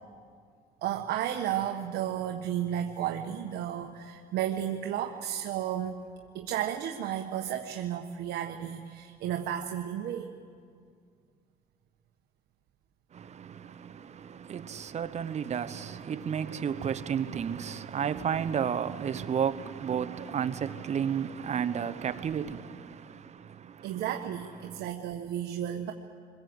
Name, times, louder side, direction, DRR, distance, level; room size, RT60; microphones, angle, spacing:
voice 1, 0.8-6.0 6.3-10.3 23.8-25.9, right 10 dB, 75° right, 1.3 m, -33 dB
voice 2, 13.1-24.0 24.6-24.9, right 8 dB, 40° right, 1.1 m, -32 dB
26.5 x 22.0 x 8.0 m
cardioid pair, 110°, 17 cm